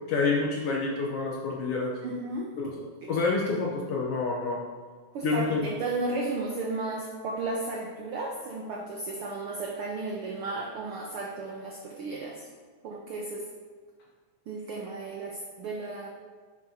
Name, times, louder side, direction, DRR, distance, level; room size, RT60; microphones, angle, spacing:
voice 1, 0.1-1.9 2.6-2.7 3.1-4.6 5.2-5.6, left 4 dB, 70° left, -2 dB, 1.5 m, -27 dB
voice 2, 2.0-2.5 3.0-3.1 5.1-12.5 12.8-13.5 14.5-16.1, right 3 dB, 80° right, 0 dB, 1.2 m, -34 dB
10.5 x 7.9 x 2.8 m, 1.5 s
omnidirectional pair, 3.5 m